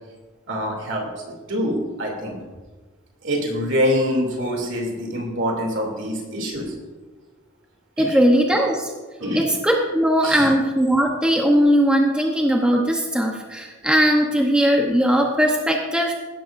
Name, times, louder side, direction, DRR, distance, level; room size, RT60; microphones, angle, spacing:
voice 1, 0.5-2.4 3.2-6.7 8.0-8.2 9.2-9.5 10.2-10.5, equal, 60° right, 0 dB, 2.8 m, -25 dB
voice 2, 8.0-8.9 9.3-16.1, equal, 5° right, 0 dB, 0.9 m, -19 dB
16.5 x 12.5 x 2.6 m, 1.3 s
head